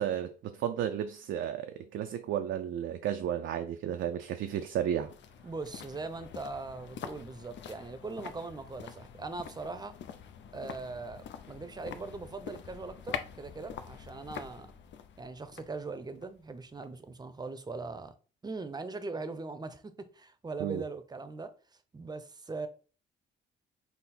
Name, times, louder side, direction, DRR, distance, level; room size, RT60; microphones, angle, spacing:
voice 1, 0.0-5.1 20.6-20.8, right 10 dB, 70° right, 0.5 m, -33 dB
sound 1, 3.9-17.1 17.4-17.5, left 8 dB, 65° left, 0.6 m, -46 dB
voice 2, 5.4-10.0 10.5-14.7 15.2-18.1 18.4-21.5 21.9-22.7, right 3 dB, 20° right, 0.7 m, -40 dB
5.7 x 2.0 x 4.2 m
cardioid pair, 90°, 20 cm